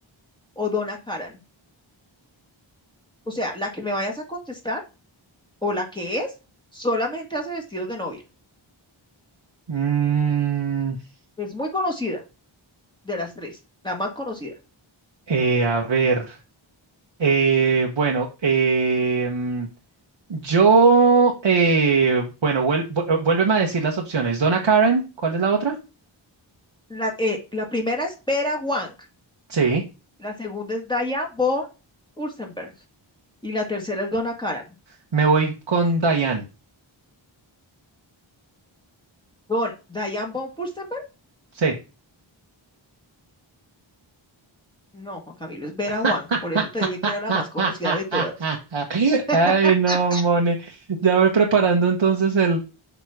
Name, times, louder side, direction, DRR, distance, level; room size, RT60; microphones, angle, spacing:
voice 1, 0.6-1.3 3.3-4.8 5.6-6.3 6.7-8.2 11.4-12.2 13.1-13.6 13.8-14.5 26.9-28.9 30.2-31.7 32.2-32.7 33.4-34.6 39.5-41.0 44.9-48.3 49.3-49.4 49.6-50.2, left 1 dB, 10° left, 0 dB, 1.8 m, -27 dB
voice 2, 9.7-11.0 15.3-16.4 17.2-19.7 20.3-25.8 29.5-29.8 35.1-36.4 41.5-41.8 46.0-46.1 47.0-52.6, right 5 dB, 65° right, 1 dB, 1.1 m, -20 dB
7.0 x 3.1 x 6.0 m, 0.30 s
wide cardioid pair, 60°, 48 cm